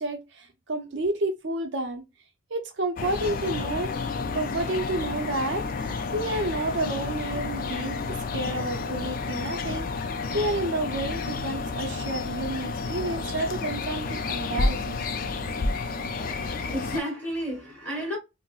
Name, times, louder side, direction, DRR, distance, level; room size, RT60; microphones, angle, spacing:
voice 1, 0.0-2.0 2.5-3.9 4.3-15.0, right 2 dB, 60° right, 0.6 m, -30 dB
sound 1, 3.0-17.0, left 3 dB, 45° left, 0.4 m, -30 dB
voice 2, 16.4-18.2, equal, 10° left, 1.4 m, -32 dB
3.8 x 2.0 x 2.3 m
head